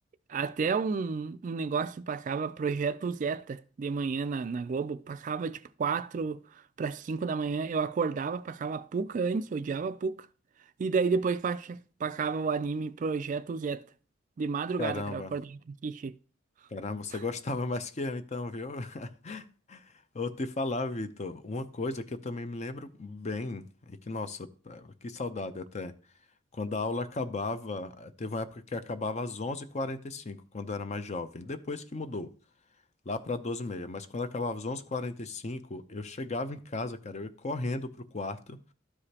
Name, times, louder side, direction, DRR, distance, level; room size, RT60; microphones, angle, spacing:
voice 1, 0.3-10.2 10.8-13.8 14.4-16.1, right 5 dB, 40° right, 0.3 m, -31 dB
voice 2, 14.8-15.3 16.7-25.9 26.5-32.3 33.1-38.6, left 3 dB, 35° left, 0.6 m, -35 dB
12.5 x 4.9 x 2.8 m
head